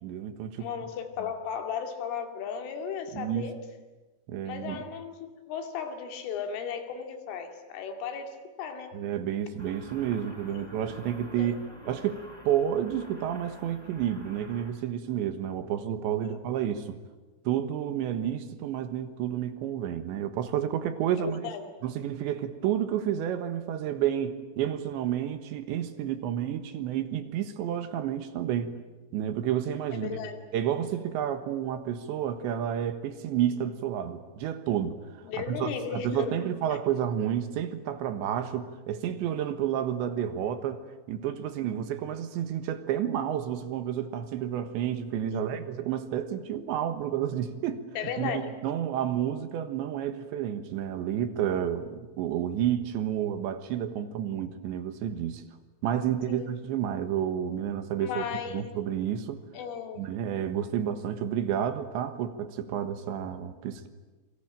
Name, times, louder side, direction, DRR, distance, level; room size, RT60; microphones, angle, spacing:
voice 1, 0.0-0.7 3.1-3.5 4.3-4.9 8.9-11.6 11.9-17.0 17.4-21.5 21.8-28.7 29.1-30.2 30.5-47.8 48.2-55.4 55.8-58.2 58.5-59.4 60.0-63.9, right 10 dB, 70° right, 10 dB, 3.4 m, -30 dB
voice 2, 0.6-3.6 4.4-9.0 10.5-10.7 11.4-11.8 16.3-16.4 21.2-21.6 30.0-30.4 35.2-36.4 36.7-36.8 45.3-45.6 48.0-48.5 56.3-56.5 58.0-58.7 59.5-60.1, left 7 dB, 75° left, 6 dB, 4.9 m, -36 dB
sound 1, 9.6-14.7, left 1 dB, 5° left, 5.4 m, -49 dB
28.0 x 23.0 x 8.9 m, 1.2 s
omnidirectional pair, 5.7 m